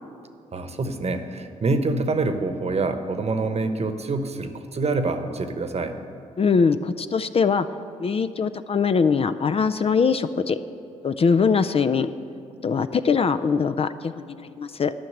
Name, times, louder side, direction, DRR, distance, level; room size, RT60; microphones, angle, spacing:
voice 1, 0.5-6.0, right 3 dB, 45° right, 8 dB, 1.0 m, -26 dB
voice 2, 6.4-7.7 8.0-10.6 11.0-12.1 12.6-14.9, left 5 dB, 40° left, 12 dB, 0.4 m, -22 dB
11.5 x 5.8 x 7.8 m, 2.6 s
hypercardioid pair, 45°, 16 cm